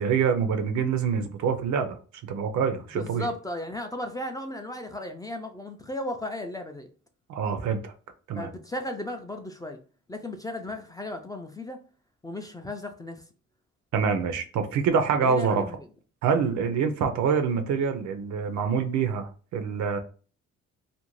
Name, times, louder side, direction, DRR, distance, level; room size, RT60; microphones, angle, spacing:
voice 1, 0.0-2.0 2.2-3.3 7.3-7.9 8.3-8.5 13.9-15.6 16.2-20.0, right 6 dB, 70° right, 0.5 m, -26 dB
voice 2, 2.8-6.9 8.4-9.8 10.1-11.8 12.2-13.2 15.2-15.8 16.8-16.9, left 1 dB, 15° left, 0.3 m, -35 dB
2.5 x 2.1 x 3.0 m
cardioid pair, 90°, 30 cm